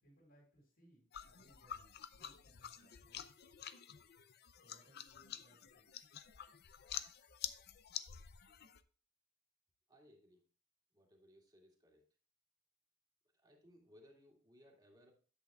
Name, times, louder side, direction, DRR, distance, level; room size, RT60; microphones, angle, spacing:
voice 1, 0.0-3.2 4.5-5.9, right 1 dB, 75° left, -6 dB, 4.3 m, -68 dB
sound 1, 1.1-8.8, left 10 dB, 55° left, 0.5 m, -49 dB
voice 2, 9.9-10.4 10.9-12.0 13.3-15.1, equal, 20° right, 0 dB, 2.1 m, -64 dB
10.5 x 8.1 x 2.3 m, 0.38 s
head